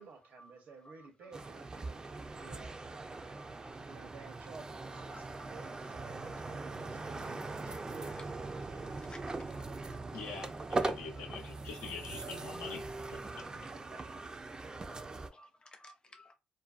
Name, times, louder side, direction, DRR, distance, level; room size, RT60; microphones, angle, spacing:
voice 1, 0.0-3.0 3.8-9.1 13.5-14.3, right 4 dB, 70° right, 0.8 m, -54 dB
voice 2, 0.8-1.5 1.8-1.9 2.4-2.8 3.2-3.8 4.9-6.1 6.8-6.9 8.0-8.2 9.0-9.2 9.5-9.6 9.9-10.0 10.3-10.4 13.4-13.5 14.9-16.3, left 1 dB, 30° left, 0.6 m, -57 dB
sound 1, 1.3-15.3, right 3 dB, 25° right, 0.4 m, -41 dB
voice 3, 10.1-12.8 13.1-13.4, left 5 dB, 90° left, 0.7 m, -44 dB
2.5 x 2.1 x 2.4 m
supercardioid pair, 70°, 3 cm